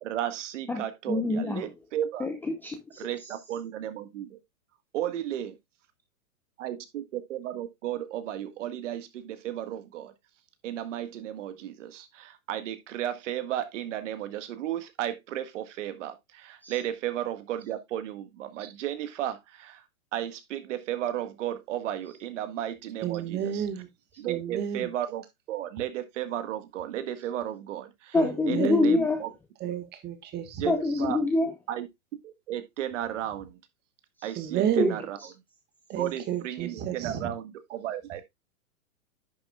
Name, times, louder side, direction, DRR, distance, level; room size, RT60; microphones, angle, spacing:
voice 1, 0.0-2.3 3.0-4.4 4.9-5.5 6.6-10.1 10.6-19.8 20.1-23.6 24.2-28.2 28.5-29.3 30.6-31.2 31.7-31.9 32.2-33.6 34.2-35.2 36.0-38.2, right 11 dB, 55° right, 1.7 m, -34 dB
voice 2, 0.7-1.6 2.2-3.0 16.6-16.7 28.1-29.2 30.7-31.5 34.8-34.9, left 2 dB, 5° left, 0.6 m, -26 dB
voice 3, 23.0-23.9 24.3-24.9 28.1-29.0 29.6-30.8 34.4-35.0 35.9-37.3, right 9 dB, 20° right, 1.7 m, -31 dB
10.5 x 7.6 x 2.4 m
hypercardioid pair, 140°, 44 cm